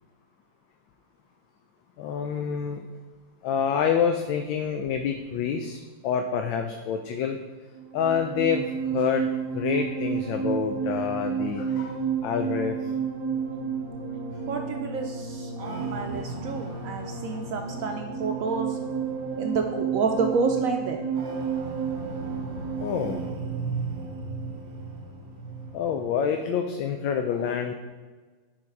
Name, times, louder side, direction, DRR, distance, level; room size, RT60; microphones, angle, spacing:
voice 1, 2.0-2.8 3.4-5.8 6.0-7.4 7.9-8.7 8.9-12.0 12.2-12.8 22.8-23.2 25.7-27.7, left 7 dB, 90° left, 5 dB, 1.3 m, -27 dB
sound 1, 7.7-26.2, right 6 dB, 40° right, 1.1 m, -31 dB
voice 2, 14.5-18.8 19.4-21.0, right 4 dB, 80° right, 4 dB, 0.7 m, -29 dB
10.0 x 4.0 x 4.5 m, 1.3 s
omnidirectional pair, 2.0 m